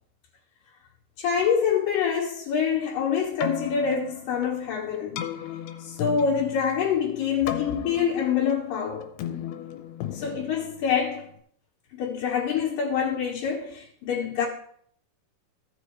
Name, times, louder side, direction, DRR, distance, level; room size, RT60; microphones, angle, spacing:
voice 1, 1.2-5.2 5.8-9.1 10.1-11.2 11.9-14.5, left 7 dB, 65° left, 2.7 m, -26 dB
Keyboard (musical), 3.2-11.4, left 11 dB, 85° left, 2.8 m, -36 dB
15.5 x 5.7 x 3.1 m
omnidirectional pair, 4.5 m